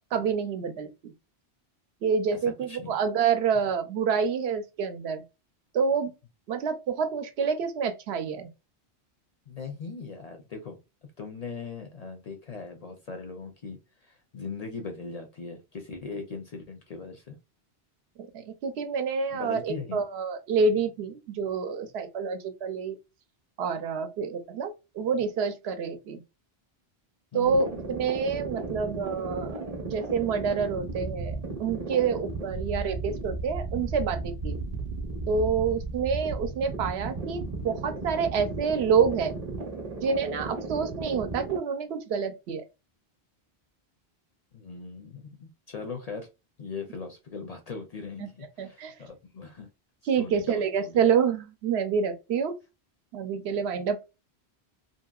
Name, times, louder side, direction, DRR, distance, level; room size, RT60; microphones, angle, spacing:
voice 1, 0.1-1.1 2.0-5.2 5.7-6.1 6.5-8.5 18.3-23.0 23.6-26.2 27.3-29.6 29.9-34.6 35.3-39.3 40.0-42.6 48.6-48.9 50.1-52.6 53.1-54.0, right 6 dB, 75° right, 0.9 m, -27 dB
voice 2, 2.5-2.9 9.5-10.8 11.2-17.4 19.3-20.0 27.3-27.8 32.5-32.8 44.5-46.3 46.6-49.7 50.2-51.1, left 4 dB, 50° left, 0.5 m, -40 dB
sound 1, 27.4-41.6, right 3 dB, 40° right, 0.7 m, -35 dB
2.8 x 2.7 x 2.3 m
omnidirectional pair, 1.1 m